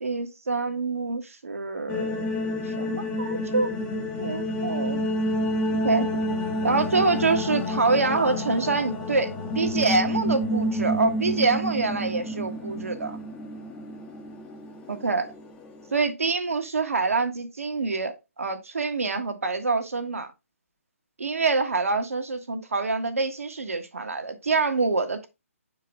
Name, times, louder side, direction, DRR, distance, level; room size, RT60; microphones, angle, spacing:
voice 1, 0.0-3.7 4.2-5.0 5.8-6.3 6.6-13.2 14.9-15.3 15.9-20.3 21.2-25.3, right 3 dB, 75° right, 1.4 m, -26 dB
sound 1, 1.9-16.0, equal, 15° left, 1.0 m, -29 dB
6.8 x 4.8 x 3.5 m
figure-of-eight pair, 135°, 8 cm